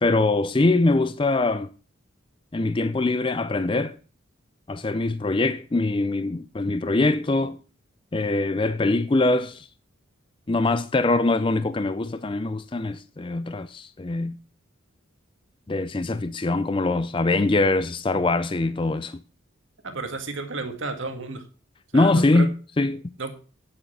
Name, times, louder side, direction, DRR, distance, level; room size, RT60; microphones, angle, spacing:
voice 1, 0.0-1.7 2.5-4.0 4.7-7.6 8.1-9.7 10.5-14.4 15.7-19.2 21.9-23.0, left 2 dB, 25° left, 0.4 m, -23 dB
voice 2, 19.8-21.4 21.9-22.5 23.2-23.4, right 3 dB, 70° right, 1.9 m, -32 dB
9.3 x 8.6 x 5.7 m
head